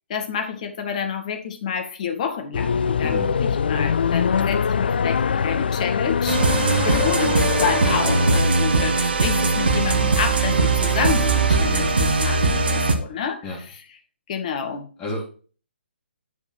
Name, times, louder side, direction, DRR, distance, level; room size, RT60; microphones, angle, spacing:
voice 1, 0.1-13.5 14.3-14.9, left 7 dB, 40° left, 6 dB, 1.9 m, -29 dB
sound 1, 2.5-8.4, left 6 dB, 55° left, 0.3 m, -23 dB
voice 2, 3.0-3.4 11.6-12.0 13.4-13.6 15.0-15.2, left 2 dB, 20° left, -6 dB, 2.7 m, -31 dB
sound 2, 6.3-13.0, right 3 dB, 60° right, 1.5 m, -20 dB
9.9 x 4.7 x 4.5 m, 0.38 s
figure-of-eight pair, 135°, 6 cm